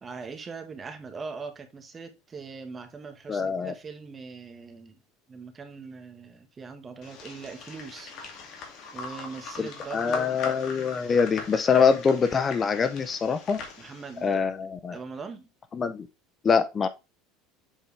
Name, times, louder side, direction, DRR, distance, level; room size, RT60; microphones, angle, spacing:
voice 1, 0.0-5.0 5.3-8.1 8.9-10.4 13.8-14.5 14.9-15.5, right 5 dB, 25° right, 1.4 m, -41 dB
voice 2, 3.3-3.7 9.6-13.6 14.2-15.0 15.7-16.1 16.4-16.9, left 6 dB, 30° left, 0.6 m, -24 dB
sound 1, 7.0-14.3, left 5 dB, 50° left, 2.3 m, -40 dB
7.4 x 4.4 x 3.3 m
supercardioid pair, 115°, 0 cm